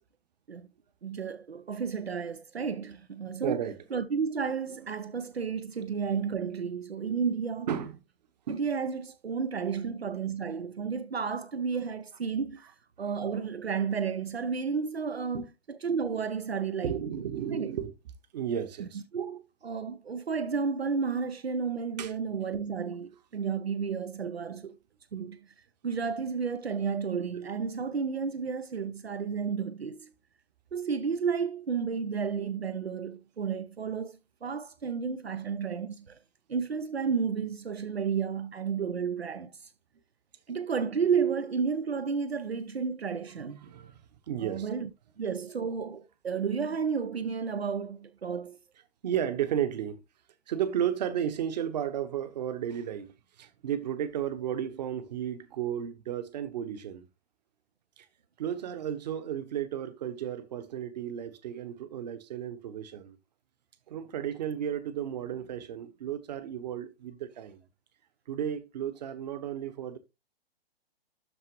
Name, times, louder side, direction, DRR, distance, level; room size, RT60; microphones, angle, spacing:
voice 1, 1.0-3.6 3.9-7.7 8.5-12.7 13.0-15.4 15.8-17.0 17.5-17.7 18.8-24.8 25.1-25.4 25.8-30.1 30.7-36.2 36.5-39.7 40.5-43.7 44.4-44.9 45.2-48.6, right 6 dB, 80° right, 0.7 m, -32 dB
voice 2, 3.4-3.8 7.7-8.0 8.5-8.6 15.3-15.5 16.8-17.9 18.3-19.0 22.0-22.1 43.6-43.9 44.3-44.7 49.0-50.0 50.5-53.1 53.4-57.0 58.0-58.1 58.4-63.2 63.9-67.6 68.3-70.0, right 9 dB, 40° right, 1.2 m, -33 dB
12.5 x 4.5 x 3.0 m
figure-of-eight pair, 120°, 31 cm